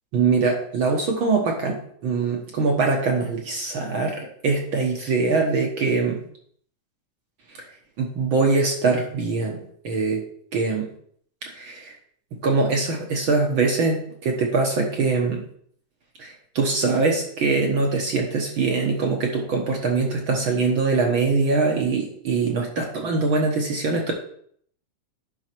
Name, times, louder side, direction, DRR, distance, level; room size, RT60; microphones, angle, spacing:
voice 1, 0.1-6.2 8.0-10.2 10.5-10.9 11.5-11.9 12.4-15.4 16.2-24.1, right 4 dB, 55° right, 1 dB, 1.5 m, -23 dB
11.0 x 5.5 x 4.6 m, 0.63 s
omnidirectional pair, 3.6 m